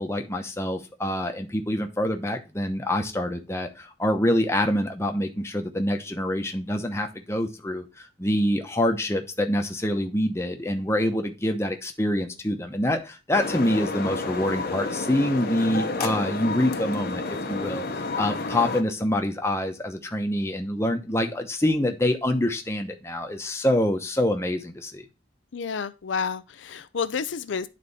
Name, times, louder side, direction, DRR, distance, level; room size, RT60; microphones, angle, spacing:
voice 1, 0.0-25.0, left 1 dB, 15° left, 0.9 m, -26 dB
sound 1, 13.3-18.8, left 3 dB, 50° left, 0.9 m, -30 dB
voice 2, 25.5-27.7, left 6 dB, 75° left, 0.5 m, -30 dB
9.8 x 4.2 x 4.1 m
head